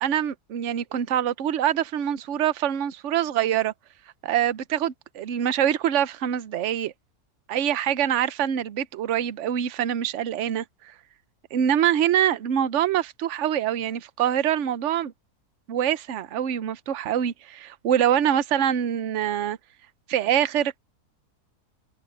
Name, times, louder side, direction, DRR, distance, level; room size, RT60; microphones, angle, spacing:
voice 1, 0.0-3.7 4.2-6.9 7.5-10.6 11.5-15.1 15.7-19.6 20.1-20.8, right 10 dB, 55° right, 1.0 m, -24 dB
open air
omnidirectional pair, 1.6 m